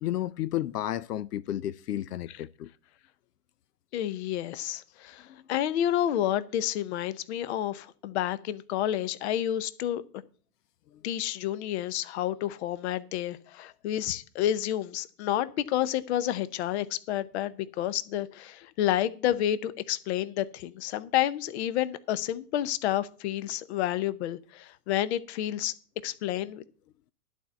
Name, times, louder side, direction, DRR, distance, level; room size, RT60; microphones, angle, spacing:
voice 1, 0.0-2.7 5.3-5.4, left 13 dB, 85° left, 0.6 m, -32 dB
voice 2, 3.9-10.0 11.0-25.7 26.0-26.6, left 12 dB, 45° left, 0.8 m, -30 dB
11.0 x 4.5 x 8.1 m
hypercardioid pair, 135°, 46 cm